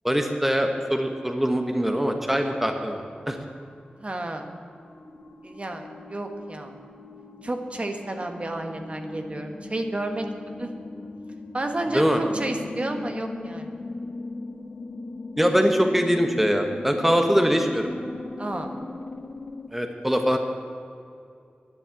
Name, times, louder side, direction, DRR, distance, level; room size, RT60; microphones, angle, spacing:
voice 1, 0.0-3.4 11.9-12.2 15.4-17.9 19.7-20.4, equal, 5° right, 4 dB, 1.1 m, -23 dB
sound 1, 2.4-3.2 3.7-19.7, left 3 dB, 65° left, 1.1 m, -39 dB
voice 2, 4.0-4.5 5.4-6.8 7.4-10.3 10.6-10.7 11.5-13.7 18.4-18.7, right 1 dB, 40° right, 4 dB, 1.4 m, -31 dB
11.0 x 10.0 x 8.5 m, 2.5 s
wide cardioid pair, 65°, 3 cm